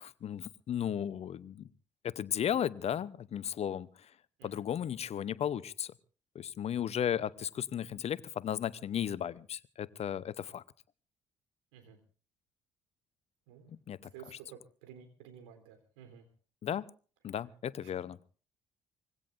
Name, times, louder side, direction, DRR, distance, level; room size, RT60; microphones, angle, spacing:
voice 1, 0.0-1.7 2.0-3.9 4.4-5.9 6.3-10.6 13.7-14.0 16.6-16.9 17.2-18.2, left 9 dB, 45° left, 0.8 m, -35 dB
voice 2, 14.1-16.3 17.8-18.1, right 8 dB, 70° right, 3.6 m, -53 dB
25.0 x 21.5 x 2.6 m
figure-of-eight pair, 50°, 15 cm